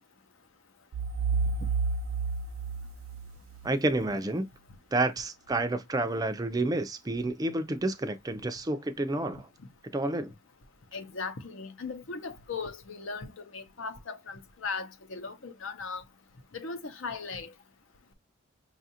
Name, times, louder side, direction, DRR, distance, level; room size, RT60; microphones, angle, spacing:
sound 1, 0.9-3.8, right 4 dB, 85° right, 0.4 m, -31 dB
voice 1, 3.6-4.5 4.9-9.5 9.8-10.3, right 2 dB, 20° right, 0.4 m, -29 dB
voice 2, 10.9-16.0 16.5-17.5, left 4 dB, 70° left, 0.7 m, -38 dB
5.5 x 2.4 x 2.7 m
head